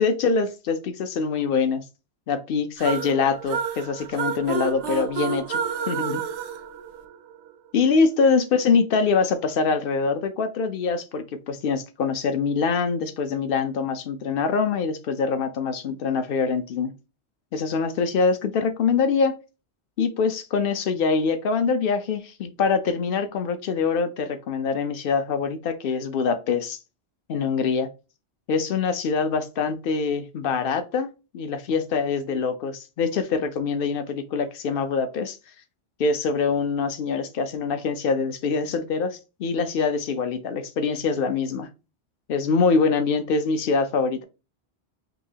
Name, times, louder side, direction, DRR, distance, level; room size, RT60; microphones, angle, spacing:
voice 1, 0.0-1.9 2.3-6.2 7.7-16.9 17.5-19.4 20.0-26.8 27.3-27.9 28.5-35.4 36.0-41.7 42.3-44.2, left 5 dB, 60° left, 0.8 m, -24 dB
sound 1, 2.8-7.5, right 7 dB, 85° right, 0.9 m, -30 dB
5.4 x 2.8 x 2.8 m
omnidirectional pair, 1.1 m